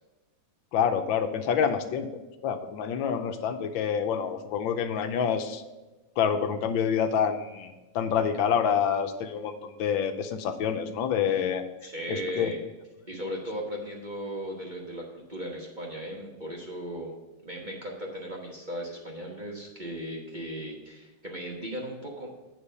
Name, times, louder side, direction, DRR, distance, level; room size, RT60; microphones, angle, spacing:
voice 1, 0.7-2.1 2.4-5.6 6.2-11.6 12.1-12.5, left 7 dB, 80° left, 8 dB, 1.4 m, -27 dB
voice 2, 11.8-12.6 13.1-17.1 17.4-22.3, equal, 30° right, -3 dB, 1.1 m, -37 dB
9.0 x 3.9 x 6.6 m, 1.1 s
omnidirectional pair, 2.1 m